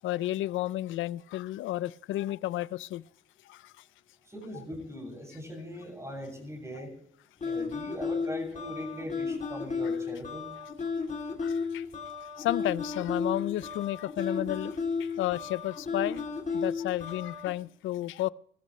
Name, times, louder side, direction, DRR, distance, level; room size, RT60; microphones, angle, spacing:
voice 1, 0.0-3.0 3.5-3.7 11.4-11.8 12.4-18.3, left 15 dB, 75° left, 0.4 m, -32 dB
voice 2, 4.3-6.9 7.4-10.5, equal, 15° right, 7.3 m, -40 dB
sound 1, 7.4-17.5, left 5 dB, 40° left, 3.0 m, -33 dB
21.5 x 14.0 x 3.2 m
cardioid pair, 90°, 20 cm